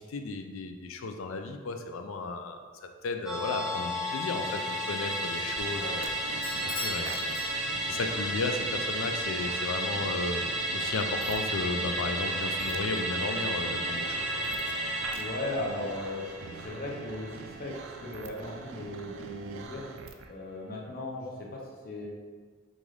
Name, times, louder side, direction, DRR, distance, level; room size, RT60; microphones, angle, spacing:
voice 1, 0.0-2.6 3.0-6.1 6.6-10.4 10.7-14.5, left 3 dB, 90° left, 6 dB, 0.4 m, -34 dB
Musical instrument, 3.3-17.9 18.3-18.4, right 1 dB, 5° right, 0.5 m, -33 dB
sound 1, 5.5-20.3, right 4 dB, 80° right, 0.4 m, -45 dB
Bell / Doorbell, 6.4-8.1, left 3 dB, 20° left, 1.3 m, -40 dB
voice 2, 15.1-19.9 20.2-22.1, left 1 dB, 50° left, -2 dB, 0.8 m, -37 dB
5.3 x 2.5 x 3.2 m, 1.5 s
head